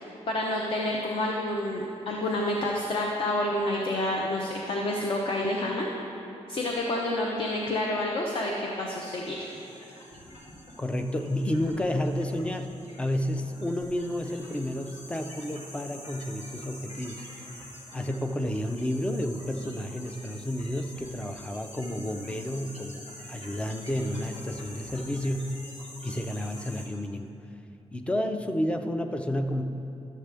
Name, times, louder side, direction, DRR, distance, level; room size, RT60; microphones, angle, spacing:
voice 1, 0.0-5.9 6.5-9.4, left 1 dB, 45° left, -1 dB, 0.7 m, -29 dB
sound 1, 9.2-26.9, left 1 dB, 70° left, 1.9 m, -46 dB
voice 2, 10.8-12.7 13.0-17.5 17.9-25.5 26.0-27.3 27.9-29.6, left 1 dB, 10° left, 6 dB, 0.4 m, -31 dB
11.5 x 7.4 x 3.4 m, 2.8 s
wide cardioid pair, 175°, 12 cm